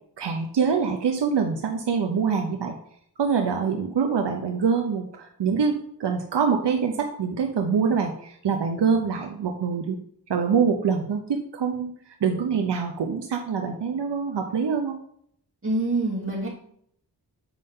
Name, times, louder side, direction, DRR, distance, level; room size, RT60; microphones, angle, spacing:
voice 1, 0.2-2.7 3.2-9.9 10.3-11.9 12.2-15.0, right 6 dB, 80° right, 3 dB, 0.8 m, -25 dB
voice 2, 15.6-16.5, right 2 dB, 30° right, -5 dB, 2.9 m, -25 dB
7.5 x 5.3 x 3.7 m, 0.66 s
wide cardioid pair, 75°, 41 cm